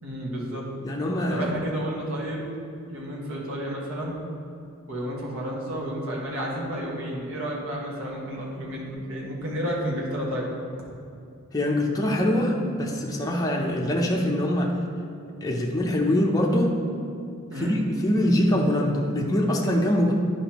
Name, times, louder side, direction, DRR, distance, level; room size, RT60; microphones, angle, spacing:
voice 1, 0.0-0.7 1.3-2.4 2.8-4.1 4.9-10.5 17.5-17.7, equal, 65° right, -3 dB, 1.5 m, -31 dB
voice 2, 0.8-1.5 11.5-14.8 15.4-16.8 17.6-20.1, left 1 dB, 15° left, -2 dB, 0.6 m, -23 dB
9.8 x 5.0 x 3.0 m, 2.6 s
head